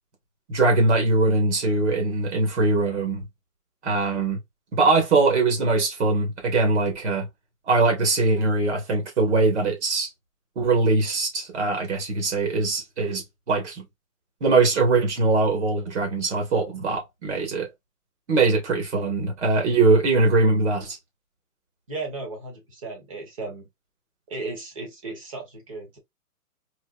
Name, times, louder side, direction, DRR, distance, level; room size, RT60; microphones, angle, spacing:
voice 1, 0.5-3.2 3.8-4.4 4.7-7.3 7.7-10.1 10.5-13.8 14.4-17.7 18.3-21.0, right 3 dB, 50° right, 1.7 m, -22 dB
voice 2, 21.9-23.7 24.3-26.0, right 3 dB, 20° right, 1.0 m, -35 dB
4.3 x 2.9 x 2.4 m
hypercardioid pair, 170°, 46 cm